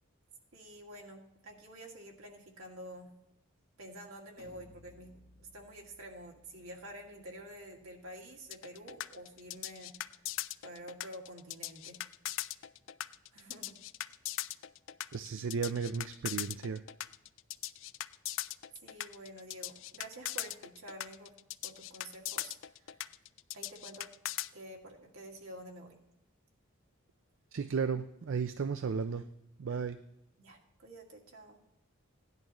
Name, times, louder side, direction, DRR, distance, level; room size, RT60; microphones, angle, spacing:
voice 1, 0.5-3.1 3.8-10.3 10.6-12.0 13.3-13.8 18.8-21.4 21.6-23.0 23.5-24.1 24.5-26.0 30.4-31.6, right 1 dB, 80° right, -1 dB, 2.1 m, -49 dB
sound 1, 4.4-10.0, left 1 dB, 40° left, 1.0 m, -63 dB
sound 2, 8.5-24.5, left 14 dB, 65° left, 0.3 m, -40 dB
voice 2, 15.1-16.8 27.5-29.3 29.6-30.0, right 5 dB, 65° right, 10 dB, 0.4 m, -34 dB
17.0 x 10.5 x 3.1 m, 0.87 s
head